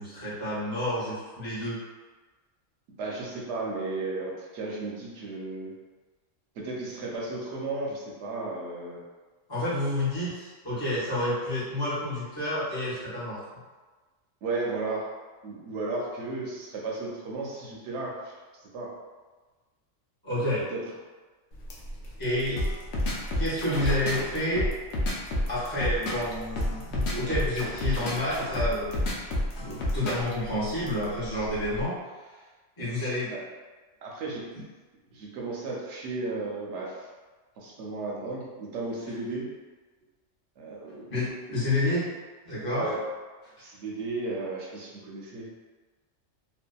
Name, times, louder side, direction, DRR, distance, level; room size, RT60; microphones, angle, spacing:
voice 1, 0.0-1.8 9.5-13.4 20.2-20.6 22.2-22.6 23.3-24.7 25.5-29.0 29.5-31.9 32.8-33.3 41.1-42.1 42.4-42.9, left 1 dB, 20° left, -11 dB, 0.7 m, -29 dB
voice 2, 3.0-5.7 6.5-9.0 14.4-15.1 15.4-18.9 20.7-20.8 33.3-33.4 34.0-34.4 35.1-37.1 37.6-39.5 40.6-41.1 42.8-43.0 43.6-45.5, right 3 dB, 70° right, -3 dB, 0.8 m, -34 dB
sound 1, 21.5-31.9, right 1 dB, 90° left, 1.0 m, -43 dB
sound 2, 22.6-30.3, left 1 dB, 65° left, 0.7 m, -29 dB
2.7 x 2.2 x 2.2 m, 1.3 s
omnidirectional pair, 1.3 m